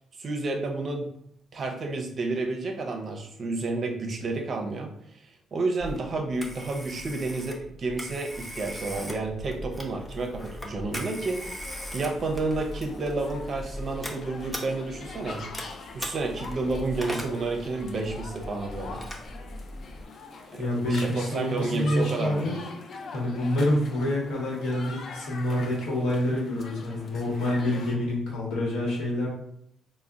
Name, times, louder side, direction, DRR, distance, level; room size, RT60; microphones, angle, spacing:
voice 1, 0.2-1.1 1.5-5.2 5.5-11.6 11.9-15.4 15.9-19.1 20.5-20.6 21.0-22.5, right 3 dB, 45° right, 4 dB, 0.5 m, -30 dB
Telephone, 5.8-20.0, equal, 5° left, 0.5 m, -39 dB
sound 1, 9.9-28.0, left 4 dB, 55° left, 0.4 m, -44 dB
voice 2, 20.6-22.6 23.1-29.3, left 1 dB, 90° left, -4 dB, 1.0 m, -27 dB
3.7 x 2.0 x 2.3 m, 0.73 s
cardioid pair, 90°, 0 cm